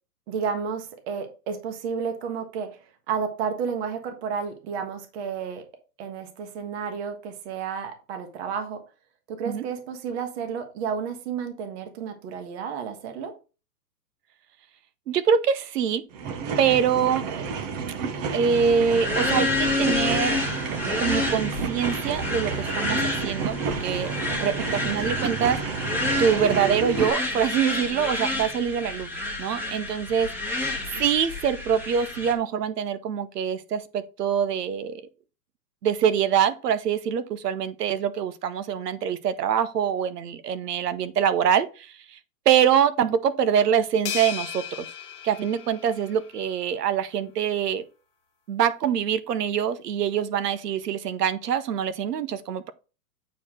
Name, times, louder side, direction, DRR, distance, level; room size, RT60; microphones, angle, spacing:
voice 1, 0.3-2.8 3.1-5.7 6.0-8.8 9.3-13.3 30.9-31.0, right 6 dB, 40° right, 1.4 m, -31 dB
voice 2, 15.1-16.0 16.6-17.3 18.3-20.4 21.0-24.1 24.4-25.6 26.2-29.1 29.4-30.7 31.0-35.0 35.8-42.2 42.5-44.9 45.2-47.8 48.5-52.7, right 8 dB, 75° right, 1.1 m, -24 dB
sound 1, 16.1-27.1, right 5 dB, 25° right, 0.7 m, -30 dB
sound 2, 18.5-32.3, left 2 dB, 5° right, 1.2 m, -29 dB
sound 3, 44.1-46.5, left 10 dB, 10° left, 0.4 m, -36 dB
8.4 x 4.7 x 3.7 m
hypercardioid pair, 140°, 48 cm